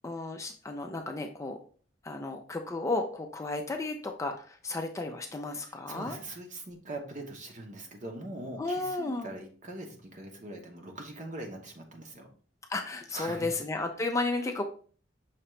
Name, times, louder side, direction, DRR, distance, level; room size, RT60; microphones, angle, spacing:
voice 1, 0.0-1.6 2.0-6.2 8.6-9.3 12.7-14.7, left 2 dB, 15° left, 4 dB, 0.4 m, -33 dB
voice 2, 5.5-12.3 13.1-13.5, right 2 dB, 45° right, 3 dB, 0.9 m, -42 dB
5.8 x 2.8 x 3.1 m, 0.42 s
head